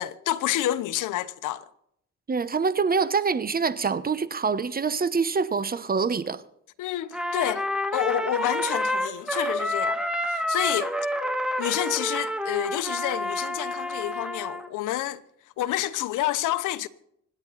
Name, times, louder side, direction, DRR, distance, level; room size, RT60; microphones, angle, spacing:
voice 1, 0.0-1.6 6.8-7.7 7.9-10.9 11.6-15.2 15.6-16.9, left 13 dB, 90° left, 1.0 m, -28 dB
voice 2, 2.3-6.4, right 5 dB, 30° right, 1.1 m, -25 dB
Trumpet, 7.1-14.7, left 1 dB, 5° right, 1.7 m, -29 dB
26.5 x 9.6 x 4.1 m
cardioid pair, 90°, 30 cm